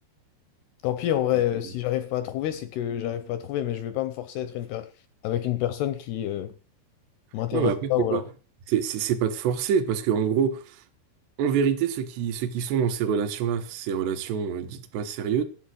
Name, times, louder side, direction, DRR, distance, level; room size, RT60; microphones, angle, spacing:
voice 1, 0.8-4.9 5.2-6.5 7.3-8.3, left 12 dB, 85° left, 2.3 m, -28 dB
voice 2, 7.5-8.2 8.7-10.8 11.4-15.4, right 7 dB, 70° right, 3.0 m, -26 dB
11.5 x 7.6 x 7.6 m
omnidirectional pair, 5.5 m